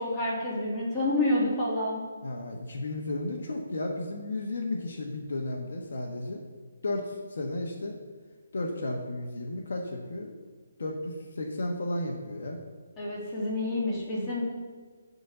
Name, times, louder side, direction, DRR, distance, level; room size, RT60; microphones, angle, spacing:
voice 1, 0.0-2.0 13.0-14.4, left 1 dB, 15° left, -8 dB, 3.1 m, -28 dB
voice 2, 2.2-6.4 6.8-8.0 8.5-10.3 10.8-12.6, left 2 dB, 70° left, 1 dB, 1.4 m, -33 dB
11.0 x 4.2 x 7.2 m, 1.5 s
hypercardioid pair, 160°, 0 cm